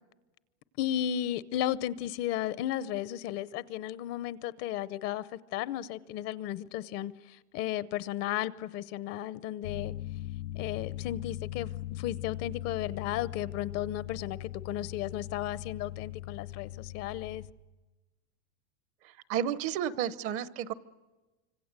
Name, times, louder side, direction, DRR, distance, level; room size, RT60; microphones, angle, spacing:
voice 1, 0.8-9.9 10.5-17.4, left 12 dB, 45° left, 0.8 m, -34 dB
sound 1, 9.6-17.5, left 14 dB, 90° left, 2.6 m, -40 dB
voice 2, 19.0-20.7, right 9 dB, 40° right, 0.9 m, -32 dB
25.5 x 25.5 x 8.1 m
supercardioid pair, 150°, 34 cm